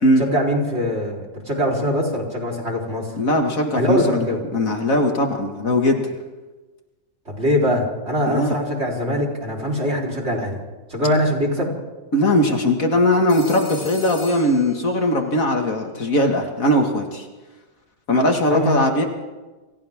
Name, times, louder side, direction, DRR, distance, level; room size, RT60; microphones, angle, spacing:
voice 1, 0.2-3.1 3.7-4.4 7.3-10.6 10.9-11.7 18.5-18.8, equal, 45° right, -2 dB, 4.6 m, -22 dB
voice 2, 3.2-4.3 4.5-6.2 8.3-8.6 12.1-17.2 18.1-19.1, left 1 dB, 60° left, 3 dB, 2.5 m, -19 dB
Telephone, 13.3-15.4, left 1 dB, 85° left, 3.4 m, -41 dB
28.0 x 27.0 x 3.7 m, 1.2 s
omnidirectional pair, 1.6 m